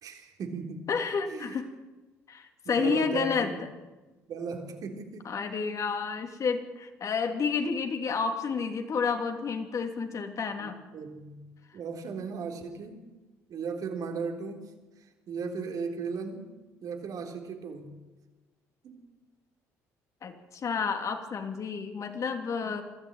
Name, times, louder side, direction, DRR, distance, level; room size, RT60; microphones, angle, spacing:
voice 1, 0.0-0.9 1.3-1.6 2.7-3.6 4.3-5.3 10.6-13.1 13.5-14.7 15.3-16.5 16.8-18.0 18.8-19.1, right 5 dB, 60° right, 4 dB, 3.6 m, -36 dB
voice 2, 0.9-1.7 2.3-3.5 5.2-10.8 20.2-22.8, left 5 dB, 50° left, 5 dB, 3.0 m, -30 dB
22.5 x 14.0 x 9.0 m, 1.2 s
hypercardioid pair, 65°, 7 cm